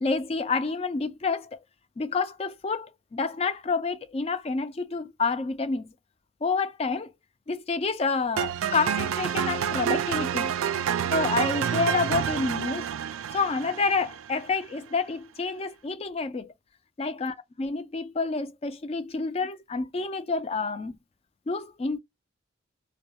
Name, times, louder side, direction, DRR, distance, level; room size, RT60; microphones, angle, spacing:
voice 1, 0.0-1.6 2.0-5.9 6.4-7.1 7.5-10.5 11.1-12.9 13.3-16.5 17.0-21.0 21.5-22.0, left 4 dB, 30° left, 0.3 m, -28 dB
sound 1, 8.4-14.5, right 8 dB, 85° right, 0.3 m, -28 dB
2.2 x 2.2 x 2.7 m
head